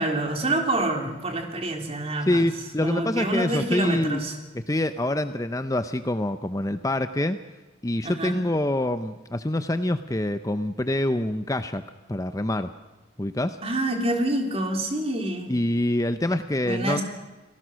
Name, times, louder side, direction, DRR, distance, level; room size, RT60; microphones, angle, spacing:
voice 1, 0.0-2.5 2.8-4.3 8.0-8.4 13.6-15.5 16.6-17.0, right 1 dB, 30° right, 4 dB, 3.4 m, -27 dB
voice 2, 2.3-4.2 4.7-7.4 7.8-11.8 12.1-12.7 13.2-13.6 15.5-17.0, left 1 dB, 20° left, 10 dB, 0.7 m, -25 dB
29.0 x 18.5 x 6.3 m, 1.2 s
head